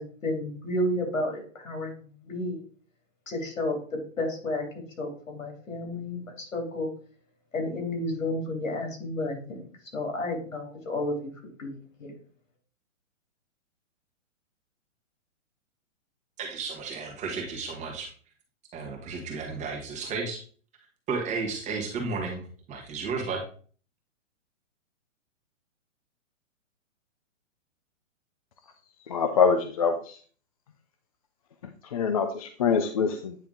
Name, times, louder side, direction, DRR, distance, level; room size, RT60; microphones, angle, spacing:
voice 1, 0.0-2.6 3.3-4.7 5.0-6.9 7.5-9.7 9.9-11.3 11.6-12.1, left 1 dB, 80° left, 2 dB, 3.1 m, -31 dB
voice 2, 16.4-18.1 18.7-20.4 21.1-22.4 22.7-23.4, right 4 dB, 20° right, 0 dB, 1.6 m, -33 dB
voice 3, 29.1-30.2 31.8-33.4, left 6 dB, 30° left, 7 dB, 0.4 m, -25 dB
9.2 x 3.4 x 3.8 m, 0.43 s
hypercardioid pair, 140°, 39 cm